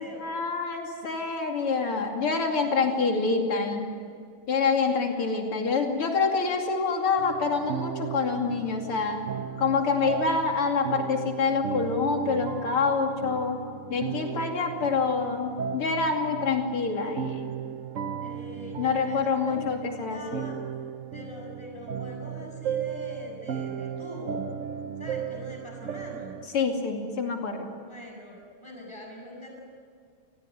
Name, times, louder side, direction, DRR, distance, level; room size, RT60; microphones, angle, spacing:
voice 1, 0.0-3.9 4.5-9.2 9.6-13.6 13.9-17.5 18.8-20.5 26.5-27.7, left 4 dB, 90° left, 2 dB, 3.5 m, -26 dB
voice 2, 2.5-2.8 3.8-4.1 18.2-19.7 20.1-20.6 21.0-24.5 25.0-26.4 27.9-29.6, left 1 dB, 10° left, 0 dB, 7.6 m, -43 dB
sound 1, 7.2-26.5, right 8 dB, 65° right, 0.7 m, -36 dB
30.0 x 20.0 x 9.6 m, 2.2 s
omnidirectional pair, 2.4 m